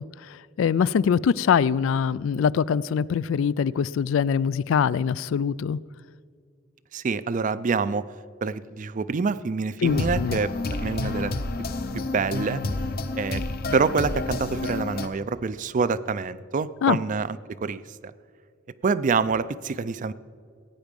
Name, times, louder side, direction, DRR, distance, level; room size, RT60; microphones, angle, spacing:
voice 1, 0.0-5.8 9.8-10.4 16.8-17.0, left 7 dB, 70° left, 21 dB, 0.3 m, -23 dB
voice 2, 6.9-8.0 8.4-11.3 11.9-12.6 13.2-13.4 13.7-18.1 18.8-20.1, right 5 dB, 40° right, 16 dB, 0.4 m, -26 dB
sound 1, 9.8-15.1, left 2 dB, 50° left, 0.8 m, -30 dB
17.5 x 9.1 x 5.3 m, 2.1 s
head